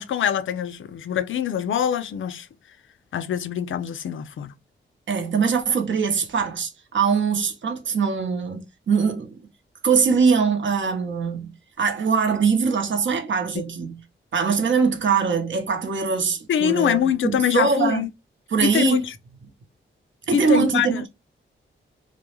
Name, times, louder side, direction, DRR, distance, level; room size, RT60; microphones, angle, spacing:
voice 1, 0.0-2.5 3.1-4.5 16.5-18.1 18.6-19.1 20.3-21.1, left 8 dB, 70° left, 0.4 m, -24 dB
voice 2, 5.1-9.4 9.8-11.5 11.8-14.0 14.3-18.0 18.5-19.0 20.3-21.1, right 5 dB, 65° right, 0.7 m, -22 dB
2.3 x 2.0 x 2.9 m
cardioid pair, 60°, 21 cm